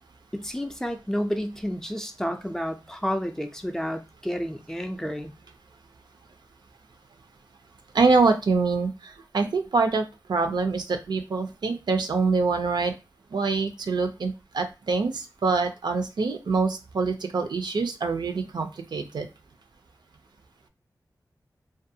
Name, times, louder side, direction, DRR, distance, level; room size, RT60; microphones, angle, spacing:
voice 1, 0.3-5.3, equal, 5° left, 0.4 m, -30 dB
voice 2, 7.9-12.9 13.3-19.3, right 4 dB, 75° right, 0.4 m, -25 dB
2.4 x 2.2 x 2.7 m
wide cardioid pair, 70°, 7 cm